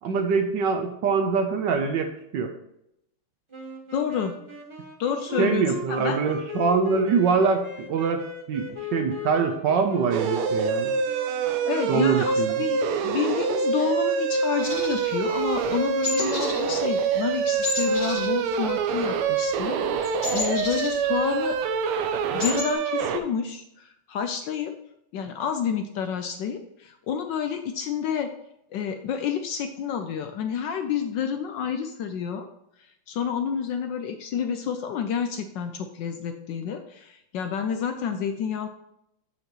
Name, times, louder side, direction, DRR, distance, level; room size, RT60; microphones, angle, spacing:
voice 1, 0.0-2.5 5.4-10.9 11.9-12.6, right 5 dB, 70° right, 6 dB, 1.2 m, -24 dB
sound 1, 3.5-12.7, left 3 dB, 20° right, 0.7 m, -38 dB
voice 2, 3.9-4.3 5.0-5.6 5.9-6.2 11.7-21.6 22.3-24.7 25.1-28.3 28.7-32.5 33.1-38.7, left 7 dB, 75° left, 7 dB, 1.1 m, -29 dB
sound 2, 10.1-23.2, right 5 dB, 90° right, 1.6 m, -26 dB
sound 3, 14.6-15.7 16.0-16.6 16.9-17.1 17.6-19.2 19.4-21.5 21.9-22.0 22.2-22.7, left 3 dB, 30° left, 1.8 m, -32 dB
7.8 x 7.0 x 3.0 m, 0.79 s
omnidirectional pair, 2.3 m